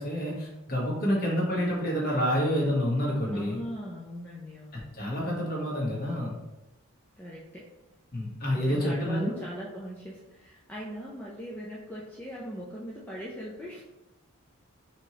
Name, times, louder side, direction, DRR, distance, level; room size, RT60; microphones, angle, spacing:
voice 1, 0.0-3.6 4.9-6.3 8.1-9.3, equal, 40° left, -3 dB, 1.1 m, -28 dB
voice 2, 3.3-4.9 7.2-7.7 8.6-13.8, equal, 10° left, -6 dB, 0.4 m, -40 dB
4.4 x 3.0 x 2.8 m, 1.0 s
head